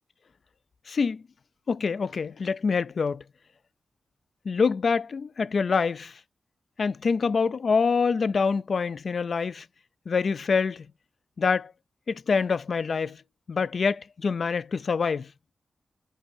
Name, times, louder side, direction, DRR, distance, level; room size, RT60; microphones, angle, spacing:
voice 1, 0.9-1.2 1.7-3.2 4.5-6.2 6.8-9.7 10.1-10.9 11.4-11.7 12.1-13.2 13.5-15.3, left 5 dB, 65° left, 0.4 m, -25 dB
5.4 x 5.3 x 5.4 m
cardioid pair, 75°, 0 cm